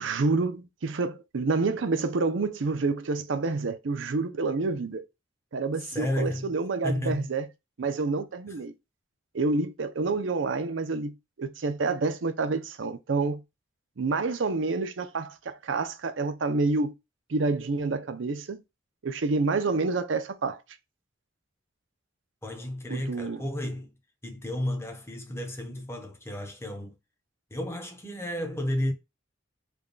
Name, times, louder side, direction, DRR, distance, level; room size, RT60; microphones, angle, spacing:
voice 1, 0.0-5.0 5.5-7.5 7.8-8.7 9.3-13.4 14.0-16.9 17.3-18.6 19.0-20.6 22.9-23.4, right 3 dB, 70° right, 0.6 m, -28 dB
voice 2, 5.9-6.5 6.8-7.3 22.4-23.9 24.2-26.9 27.5-28.9, left 1 dB, 15° left, 0.7 m, -32 dB
3.4 x 2.3 x 3.7 m
head